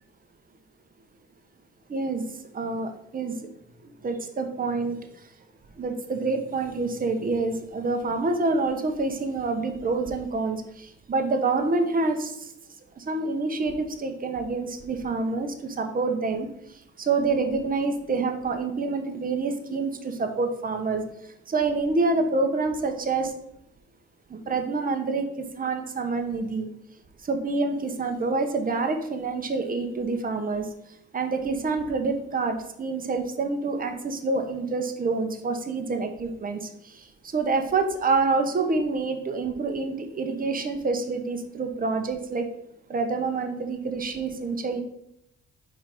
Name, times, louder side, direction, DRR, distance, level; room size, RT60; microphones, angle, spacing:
voice 1, 1.9-2.2 2.5-3.4 4.0-5.0 5.8-10.6 11.1-12.3 13.0-16.5 17.0-21.0 21.5-23.3 24.3-26.7 27.3-30.6 31.1-36.6 37.3-42.5 42.9-44.8, right 3 dB, 30° right, 5 dB, 0.8 m, -27 dB
5.0 x 3.9 x 4.8 m, 0.78 s
cardioid pair, 90°, 30 cm